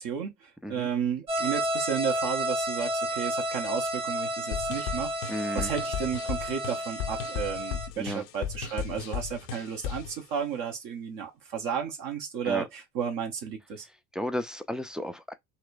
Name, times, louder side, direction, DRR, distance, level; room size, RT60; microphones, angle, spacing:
voice 1, 0.0-13.9, right 7 dB, 55° right, 0.9 m, -33 dB
sound 1, 1.3-7.9, right 1 dB, 90° right, 1.2 m, -31 dB
sound 2, 4.5-10.2, left 9 dB, 70° left, 0.6 m, -36 dB
voice 2, 5.3-5.7 8.0-8.2 12.4-12.6 14.1-15.3, equal, ahead, 0.3 m, -33 dB
4.1 x 2.1 x 2.5 m
figure-of-eight pair, 55°, 43 cm